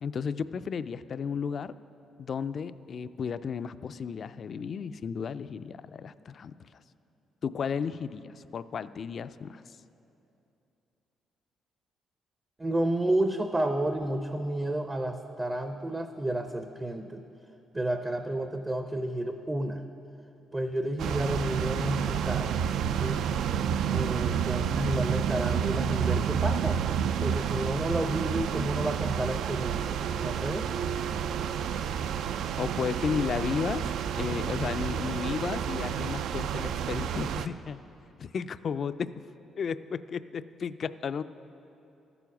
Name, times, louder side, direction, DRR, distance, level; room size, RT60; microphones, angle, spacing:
voice 1, 0.0-1.7 2.2-6.5 7.4-9.6 32.6-33.9 34.2-37.8 38.2-39.1 39.6-41.2, left 6 dB, 50° left, 14 dB, 0.3 m, -33 dB
voice 2, 12.6-17.2 17.7-19.8 20.5-22.6 23.0-23.3 23.9-26.8 27.2-30.7, right 1 dB, 20° right, 7 dB, 0.5 m, -31 dB
sound 1, 21.0-37.5, right 8 dB, 80° right, 0.3 m, -30 dB
13.5 x 7.0 x 6.0 m, 2.8 s
cardioid pair, 90°, 0 cm